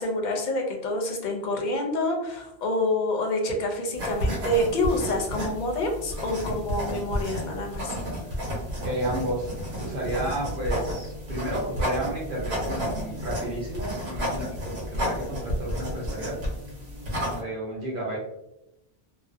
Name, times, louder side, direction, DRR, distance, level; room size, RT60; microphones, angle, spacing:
voice 1, 0.0-7.9, left 1 dB, 55° left, 2 dB, 0.6 m, -27 dB
sound 1, 3.9-17.4, equal, 75° right, 1.1 m, -32 dB
voice 2, 8.8-9.5 9.8-16.4 17.2-18.2, right 1 dB, 55° right, -4 dB, 0.7 m, -32 dB
2.5 x 2.0 x 2.4 m, 0.85 s
omnidirectional pair, 1.1 m